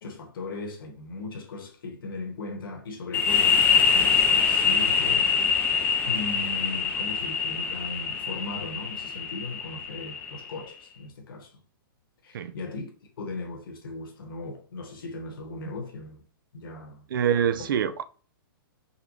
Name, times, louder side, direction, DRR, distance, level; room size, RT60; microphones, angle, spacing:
voice 1, 0.0-5.6 6.0-11.6 12.2-12.9 13.2-16.2 16.5-17.0, left 3 dB, 70° left, 1.1 m, -38 dB
sound 1, 3.1-10.6, left 6 dB, 15° left, 0.3 m, -24 dB
voice 2, 17.1-18.0, right 8 dB, 65° right, 0.4 m, -25 dB
3.9 x 2.1 x 3.0 m
hypercardioid pair, 155°, 12 cm